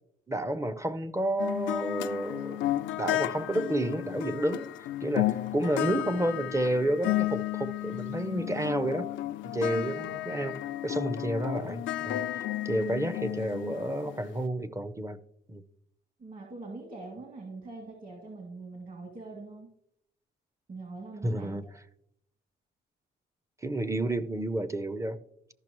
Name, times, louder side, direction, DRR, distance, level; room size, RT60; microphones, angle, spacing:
voice 1, 0.3-4.7 5.0-9.1 9.4-15.2 15.5-15.6 21.2-21.6 23.6-25.2, right 1 dB, 15° right, 0.6 m, -30 dB
sound 1, 1.4-14.4, left 15 dB, 75° left, 0.4 m, -33 dB
voice 2, 16.2-19.7 20.7-21.7, right 3 dB, 45° right, 2.3 m, -43 dB
13.5 x 5.8 x 3.0 m
cardioid pair, 90°, 20 cm